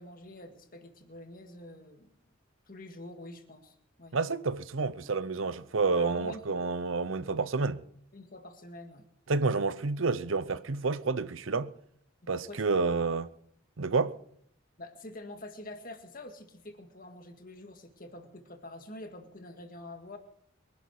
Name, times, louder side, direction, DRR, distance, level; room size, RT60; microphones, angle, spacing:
voice 1, 0.0-2.1 2.7-4.2 5.9-6.6 8.1-9.1 12.2-13.0 14.8-20.2, left 1 dB, 40° left, 1.9 m, -46 dB
voice 2, 4.1-7.8 9.3-11.7 12.3-13.3 13.8-14.1, right 4 dB, 70° right, 0.8 m, -29 dB
23.5 x 11.0 x 4.8 m
head